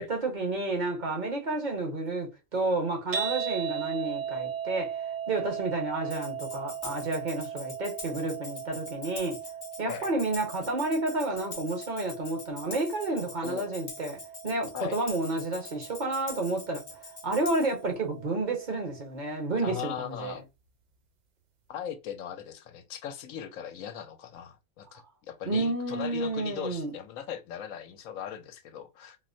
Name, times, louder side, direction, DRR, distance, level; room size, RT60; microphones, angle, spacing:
voice 1, 0.0-5.0 5.3-9.4 9.8-17.0 17.2-20.4 25.4-26.9, right 2 dB, 40° right, 0.9 m, -30 dB
sound 1, 3.1-19.4, right 8 dB, 85° right, 0.4 m, -38 dB
Tambourine, 6.1-17.8, left 3 dB, 35° left, 0.6 m, -45 dB
voice 2, 19.6-20.4 21.7-29.2, left 9 dB, 75° left, 1.0 m, -39 dB
4.1 x 2.1 x 2.5 m
omnidirectional pair, 1.4 m